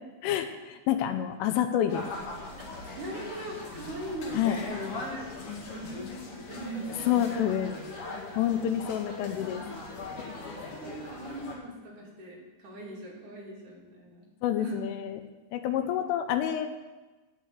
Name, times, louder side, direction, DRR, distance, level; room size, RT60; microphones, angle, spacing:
voice 1, 0.2-2.1 4.3-4.6 7.1-7.7 8.4-9.6 14.4-15.2 15.5-16.7, left 10 dB, 80° left, 8 dB, 3.3 m, -28 dB
sound 1, 1.9-11.6, left 3 dB, 50° left, 2.8 m, -40 dB
voice 2, 3.0-4.4 5.0-5.4 5.6-7.2 10.8-14.3 14.6-14.8, right 1 dB, 45° right, -5 dB, 3.8 m, -40 dB
18.0 x 6.1 x 8.2 m, 1.2 s
omnidirectional pair, 5.8 m